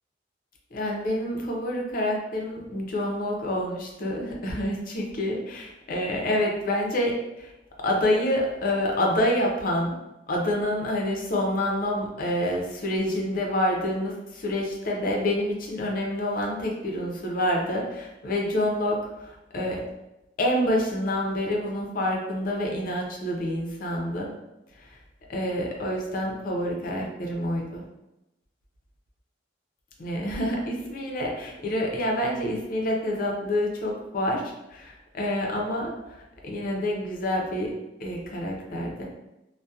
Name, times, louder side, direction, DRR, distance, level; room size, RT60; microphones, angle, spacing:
voice 1, 0.7-7.5 7.8-9.9 10.3-19.8 20.4-24.3 24.8-25.0 25.3-27.8 30.0-34.4 34.7-37.7 38.0-39.0, left 1 dB, 50° left, 0 dB, 0.5 m, -27 dB
2.7 x 2.1 x 2.3 m, 0.92 s
head